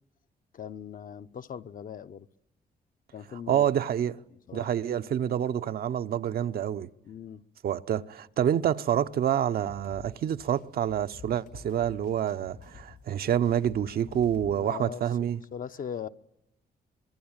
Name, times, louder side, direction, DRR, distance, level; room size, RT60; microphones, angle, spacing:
voice 1, 0.5-2.3 3.1-3.7 4.5-4.7 7.0-7.4 14.6-15.0 15.5-16.1, left 8 dB, 60° left, 0.9 m, -39 dB
voice 2, 3.5-4.1 4.5-6.9 7.6-15.4, right 10 dB, 70° right, 0.9 m, -27 dB
sound 1, 9.6-14.5, left 5 dB, 90° left, 5.4 m, -50 dB
25.5 x 22.5 x 8.9 m
cardioid pair, 80°, 16 cm